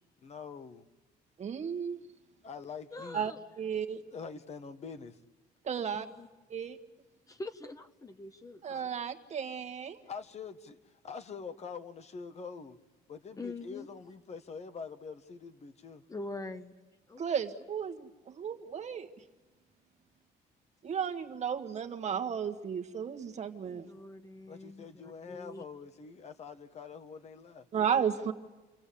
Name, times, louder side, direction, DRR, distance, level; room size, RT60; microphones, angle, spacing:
voice 1, 0.2-0.8 2.4-3.3 4.1-5.2 10.1-12.8 13.1-16.0 24.5-27.7, left 5 dB, 40° left, 9 dB, 1.4 m, -45 dB
voice 2, 1.4-2.0 3.1-4.0 5.6-6.1 6.5-6.8 8.6-10.0 17.2-19.1 20.8-23.9 27.7-28.3, right 7 dB, 40° right, 7 dB, 1.7 m, -34 dB
voice 3, 2.9-3.4 5.8-6.3 7.3-8.9 13.4-13.9 16.1-16.7 17.1-17.5 23.7-25.6, left 2 dB, 20° left, 8 dB, 1.2 m, -44 dB
29.5 x 22.5 x 8.6 m, 1.2 s
cardioid pair, 110°, 17 cm